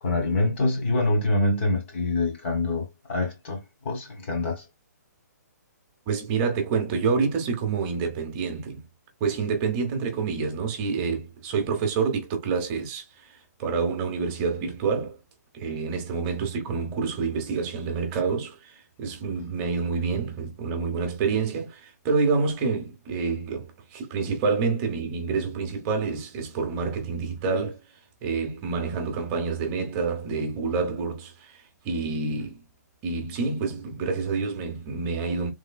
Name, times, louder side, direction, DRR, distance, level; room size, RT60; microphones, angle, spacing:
voice 1, 0.0-3.6 3.8-4.6, left 2 dB, 40° left, 1.5 m, -25 dB
voice 2, 6.1-8.9 9.2-15.2 15.5-27.8 28.2-32.6 33.0-35.5, right 5 dB, 25° right, 0.9 m, -28 dB
3.4 x 3.0 x 2.2 m
hypercardioid pair, 150°, 9 cm